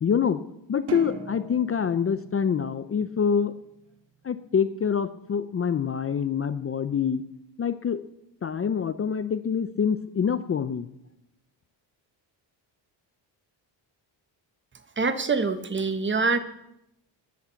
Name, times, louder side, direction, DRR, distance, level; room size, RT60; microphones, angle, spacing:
voice 1, 0.0-0.4 0.7-3.5 4.2-7.2 7.6-8.0 8.4-10.9, left 7 dB, 30° left, 12 dB, 0.6 m, -26 dB
sound 1, 0.9-3.4, right 4 dB, 55° right, 2.3 m, -39 dB
voice 2, 15.0-16.4, right 4 dB, 25° right, 11 dB, 1.2 m, -25 dB
14.5 x 10.5 x 8.3 m, 0.84 s
cardioid pair, 155°, 46 cm